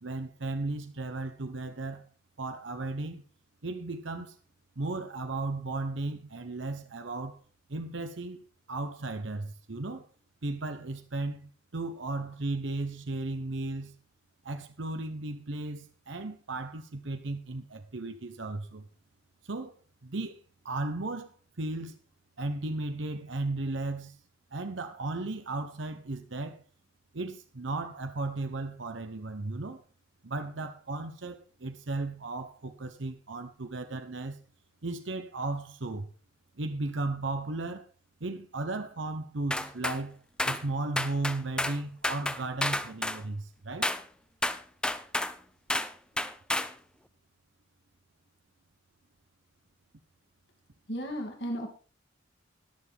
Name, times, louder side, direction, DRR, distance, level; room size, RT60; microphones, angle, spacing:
voice 1, 0.0-2.1 2.4-3.2 3.6-4.4 4.8-7.4 7.7-10.1 10.4-13.9 14.4-18.9 19.4-19.7 20.0-20.4 20.6-22.0 22.4-24.2 24.5-26.6 27.1-29.8 30.2-34.4 34.8-36.1 36.6-37.9 38.2-40.2 40.4-43.9, right 2 dB, 70° right, 0.9 m, -35 dB
sound 1, 39.5-40.0 40.4-40.6 41.0-41.8 42.0-43.2 43.8-44.0 44.4-45.3 45.7-45.9 46.2-46.7, left 1 dB, 5° left, 0.5 m, -30 dB
voice 2, 50.9-51.7, equal, 60° left, 2.7 m, -34 dB
21.0 x 7.3 x 3.5 m
head